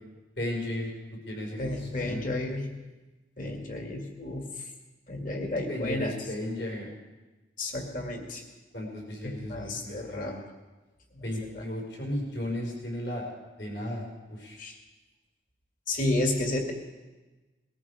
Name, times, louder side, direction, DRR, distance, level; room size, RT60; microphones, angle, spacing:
voice 1, 0.4-0.9 1.2-2.2 5.7-6.9 8.7-10.4 11.2-13.3 13.6-14.6, left 1 dB, 65° left, -2 dB, 4.9 m, -35 dB
voice 2, 1.6-2.7 3.4-4.7 5.1-6.1 7.6-8.4 9.2-10.3 11.1-11.2 11.5-11.6 14.6-14.8 15.9-16.7, left 2 dB, 45° left, 3 dB, 2.3 m, -32 dB
20.5 x 13.5 x 4.9 m, 1.2 s
head